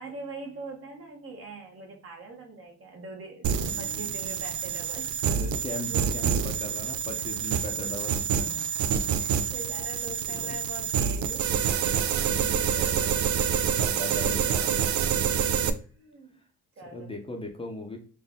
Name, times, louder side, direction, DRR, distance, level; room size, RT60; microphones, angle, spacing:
voice 1, 0.0-5.4 5.9-6.1 7.1-7.4 8.4-8.7 9.1-11.5 12.2-13.6 15.8-16.4 16.8-17.1, right 2 dB, 50° right, 1.5 m, -43 dB
sound 1, 3.4-15.7, right 8 dB, 70° right, 0.5 m, -27 dB
voice 2, 3.7-4.2 5.3-8.6 10.4-10.6 12.3-12.6 13.7-14.8 16.9-18.0, left 2 dB, 20° left, 0.8 m, -38 dB
4.2 x 2.5 x 3.6 m
cardioid pair, 90°, 30 cm